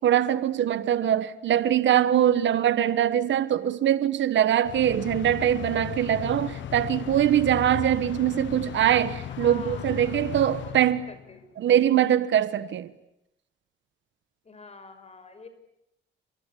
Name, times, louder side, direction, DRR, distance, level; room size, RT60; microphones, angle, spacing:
voice 1, 0.0-11.0 11.6-12.9, right 11 dB, 70° right, 1.3 m, -23 dB
sound 1, 4.6-11.5, left 10 dB, 70° left, 1.1 m, -36 dB
voice 2, 9.3-10.8 11.1-11.5 14.4-15.5, left 4 dB, 30° left, 5.9 m, -47 dB
30.0 x 23.0 x 8.5 m
cardioid pair, 90°, 20 cm